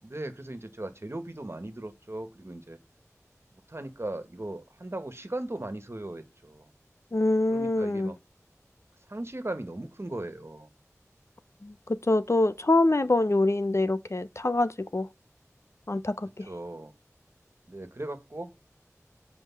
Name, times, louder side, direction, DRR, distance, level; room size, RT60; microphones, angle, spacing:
voice 1, 0.0-2.8 3.7-6.7 7.5-8.2 9.1-10.7 16.5-16.9 17.7-18.5, right 1 dB, 50° right, 1.6 m, -38 dB
voice 2, 7.1-8.1 11.6-15.1 15.9-16.5, left 2 dB, 55° left, 0.8 m, -25 dB
8.1 x 5.3 x 7.1 m
wide cardioid pair, 40°, 6 cm